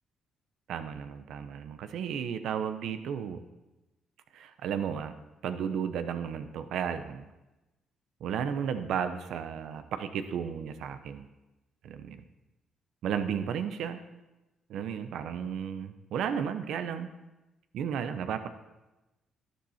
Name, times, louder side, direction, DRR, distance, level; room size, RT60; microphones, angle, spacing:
voice 1, 0.7-3.4 4.3-5.1 5.4-7.2 8.2-11.3 11.8-12.2 13.0-14.0 14.7-17.1 17.7-18.5, right 8 dB, 80° right, 10 dB, 0.9 m, -33 dB
12.0 x 10.5 x 4.3 m, 1.0 s
cardioid pair, 90°, 0 cm